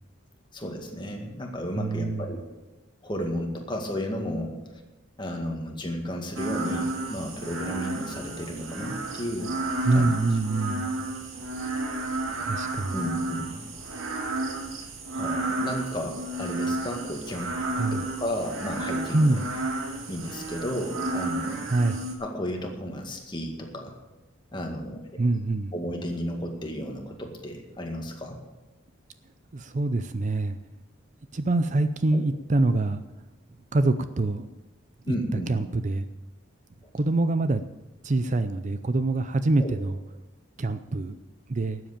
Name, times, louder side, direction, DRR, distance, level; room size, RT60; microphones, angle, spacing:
voice 1, 0.5-2.4 3.0-4.8 5.2-9.6 9.9-10.4 12.9-13.6 15.1-19.4 20.1-21.7 22.2-24.0 24.5-25.2 25.7-28.4 32.1-32.2 35.1-35.5 36.8-36.9 39.6-39.7, equal, 25° left, 2 dB, 2.0 m, -33 dB
voice 2, 1.8-2.3 9.8-10.9 12.4-13.0 17.8-18.1 19.1-19.5 21.6-22.0 25.2-25.7 29.5-30.6 31.3-33.0 33.7-34.5 35.1-36.1 36.9-37.6 38.0-40.0 40.6-41.2 41.5-41.8, right 2 dB, 35° right, 10 dB, 0.5 m, -25 dB
sound 1, 6.4-22.1, right 2 dB, 85° right, 2.2 m, -32 dB
12.5 x 7.8 x 8.7 m, 1.1 s
head